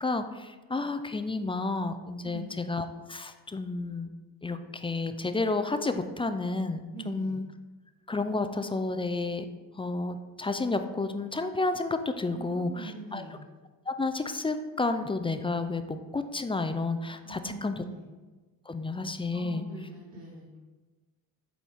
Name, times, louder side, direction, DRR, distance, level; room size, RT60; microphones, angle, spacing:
voice 1, 0.0-4.1 4.4-7.4 8.1-9.5 9.8-13.2 13.9-17.8 18.7-19.6, left 3 dB, 15° left, 9 dB, 0.3 m, -31 dB
voice 2, 2.2-2.5 6.9-7.4 12.3-13.4 17.2-18.1 19.3-20.6, right 2 dB, 85° right, -5 dB, 1.3 m, -43 dB
7.4 x 4.0 x 3.5 m, 1.3 s
supercardioid pair, 65°, 44 cm